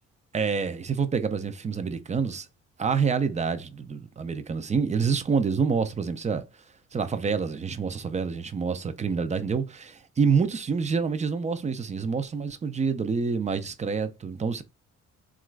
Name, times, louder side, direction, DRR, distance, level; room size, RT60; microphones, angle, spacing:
voice 1, 0.3-2.5 2.8-6.4 6.9-14.6, right 5 dB, 25° right, 0.4 m, -27 dB
3.0 x 2.4 x 3.2 m
cardioid pair, 90°, 30 cm